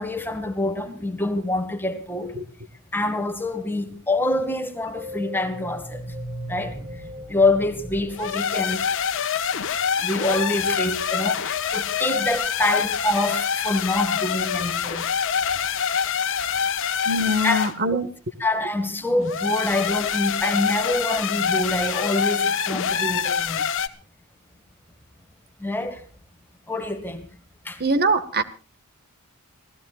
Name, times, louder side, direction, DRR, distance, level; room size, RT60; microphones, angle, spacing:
voice 1, 0.0-2.4 2.9-6.0 6.5-6.8 7.3-8.8 10.0-15.0 17.4-18.0 18.4-23.6 25.6-26.0 26.7-27.3 27.7-27.8, left 2 dB, 10° left, 2.1 m, -26 dB
sound 1, 4.5-9.2, equal, 20° right, 7.1 m, -38 dB
sound 2, 8.1-17.8 19.2-23.9, left 7 dB, 60° left, 1.3 m, -25 dB
voice 2, 17.1-18.1 27.8-28.4, right 1 dB, 45° right, 1.7 m, -22 dB
27.5 x 17.5 x 2.5 m
head